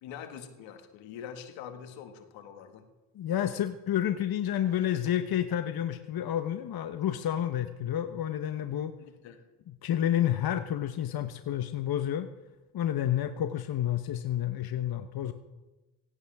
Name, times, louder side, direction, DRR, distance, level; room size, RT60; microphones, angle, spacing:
voice 1, 0.0-2.9 9.0-9.5, left 8 dB, 85° left, 6 dB, 2.0 m, -44 dB
voice 2, 3.1-8.9 9.7-12.3 12.7-15.3, left 11 dB, 55° left, 8 dB, 1.0 m, -30 dB
17.5 x 16.0 x 3.6 m, 1.1 s
supercardioid pair, 60°, 45 cm